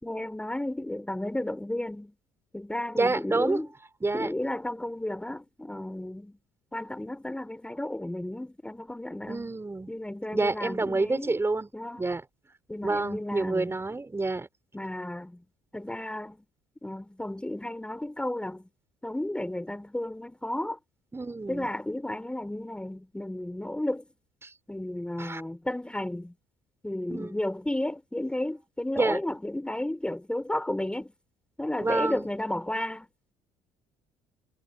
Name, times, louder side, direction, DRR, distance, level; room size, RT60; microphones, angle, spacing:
voice 1, 0.0-2.1 2.5-3.7 4.1-6.4 6.7-9.5 9.9-11.4 11.7-12.0 12.7-13.8 14.7-15.4 15.7-16.4 16.8-18.7 19.0-20.8 21.5-24.1 24.7-26.3 26.8-31.1 31.6-33.1, left 1 dB, 10° left, 4.0 m, -33 dB
voice 2, 3.0-3.6 4.0-4.3 9.3-9.9 10.3-11.7 12.0-12.2 12.8-14.5 21.1-21.7 24.4-24.5 25.2-25.4 27.1-27.4 29.0-29.2 31.8-32.3, right 3 dB, 20° right, 5.6 m, -28 dB
hypercardioid pair, 65°, 13 cm